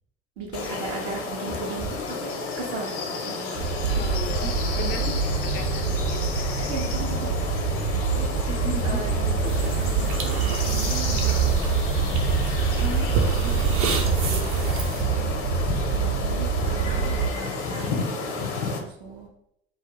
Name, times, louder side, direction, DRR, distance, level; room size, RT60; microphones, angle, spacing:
voice 1, 0.4-3.7 4.9-5.2 6.6-7.3 7.8-8.5 8.8-11.5 14.9-15.5 15.9-19.3, right 3 dB, 70° right, -1 dB, 0.9 m, -37 dB
sound 1, 0.5-18.8, left 4 dB, 60° left, 0.7 m, -32 dB
sound 2, 3.6-17.3, right 5 dB, 85° right, 1.2 m, -25 dB
voice 2, 3.9-6.8 8.5-9.3 12.8-14.4, left 5 dB, 30° left, 5 dB, 0.4 m, -38 dB
sound 3, 9.4-15.0, right 4 dB, 40° right, 0.5 m, -30 dB
2.5 x 2.3 x 3.5 m, 0.77 s
figure-of-eight pair, 60°, 35 cm